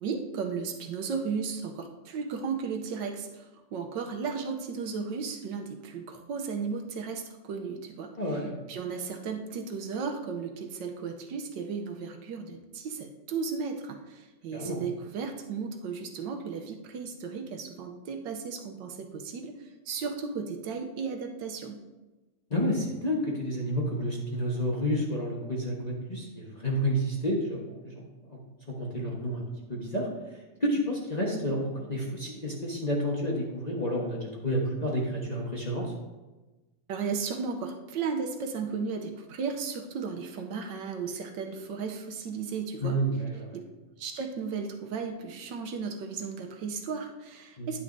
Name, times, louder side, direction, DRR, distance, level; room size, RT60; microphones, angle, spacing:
voice 1, 0.0-8.1 8.7-21.8 36.9-43.0 43.5-43.6 44.0-47.8, right 5 dB, 75° right, 4 dB, 1.4 m, -35 dB
voice 2, 8.2-8.6 14.5-14.8 22.5-28.4 28.7-29.4 29.7-30.1 30.6-35.9 42.8-43.6 47.6-47.7, equal, 25° left, -4 dB, 1.1 m, -30 dB
9.6 x 9.2 x 2.6 m, 1.2 s
omnidirectional pair, 2.1 m